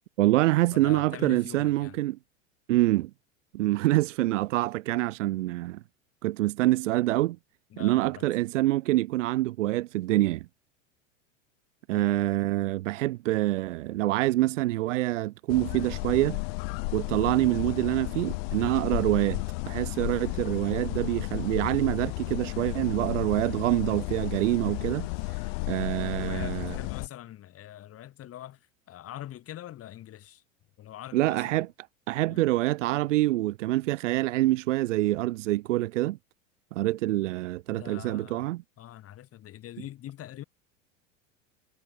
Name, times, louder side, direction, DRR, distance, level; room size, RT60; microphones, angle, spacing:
voice 1, 0.2-2.2 2.7-3.1 3.5-5.8 6.2-7.4 7.8-10.5 11.9-16.4 16.9-25.4 25.7-26.7 31.1-31.7 32.1-36.2 36.7-38.6, right 17 dB, 75° right, 0.7 m, -26 dB
voice 2, 0.7-2.0 7.7-8.3 11.9-12.2 26.0-30.4 30.8-31.6 32.3-32.4 37.7-40.4, left 12 dB, 35° left, 3.2 m, -43 dB
sound 1, 15.5-27.1, left 31 dB, 55° left, 0.5 m, -33 dB
hypercardioid pair, 95°, 38 cm